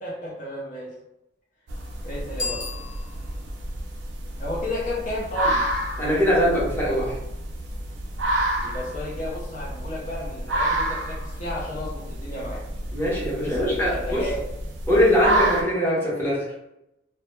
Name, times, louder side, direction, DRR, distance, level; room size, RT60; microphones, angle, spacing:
voice 1, 0.0-0.9 2.0-2.7 4.4-5.7 8.6-12.7 13.4-14.4, left 1 dB, 45° left, -5 dB, 0.5 m, -32 dB
sound 1, 1.7-15.6, right 1 dB, 70° right, 0.5 m, -29 dB
Bicycle bell, 2.3-3.5, left 3 dB, 75° left, 1.0 m, -34 dB
voice 2, 6.0-7.2 12.9-14.2 14.9-16.4, equal, 10° left, -7 dB, 0.7 m, -22 dB
2.1 x 2.0 x 3.0 m, 0.88 s
head